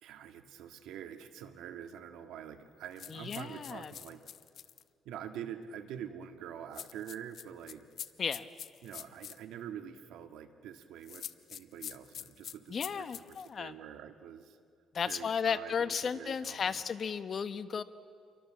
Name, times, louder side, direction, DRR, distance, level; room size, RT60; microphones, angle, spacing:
voice 1, 0.0-4.2 5.1-7.8 8.8-14.6 15.1-16.8, right 9 dB, 90° right, 7 dB, 1.6 m, -46 dB
sound 1, 3.0-4.8 6.7-9.4 11.0-13.5, left 9 dB, 65° left, 0.9 m, -45 dB
voice 2, 3.1-3.9 8.2-8.5 12.7-13.8 14.9-17.8, left 6 dB, 50° left, 11 dB, 1.1 m, -34 dB
28.5 x 23.5 x 7.5 m, 2.2 s
cardioid pair, 90°, 0 cm